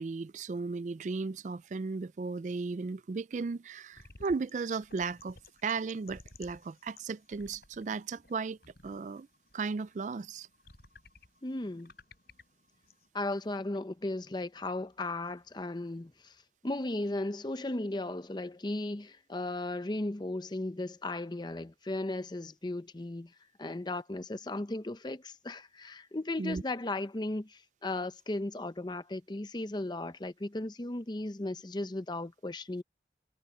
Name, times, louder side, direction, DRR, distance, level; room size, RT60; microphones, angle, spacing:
voice 1, 0.0-5.4 5.6-8.6 8.8-9.3 9.5-10.5 26.4-26.6, right 4 dB, 45° right, 0.4 m, -35 dB
sound 1, 3.9-13.1, left 3 dB, 60° left, 5.5 m, -58 dB
voice 2, 11.4-11.9 13.1-16.3 16.6-23.3 23.6-32.8, left 2 dB, 25° left, 0.6 m, -36 dB
head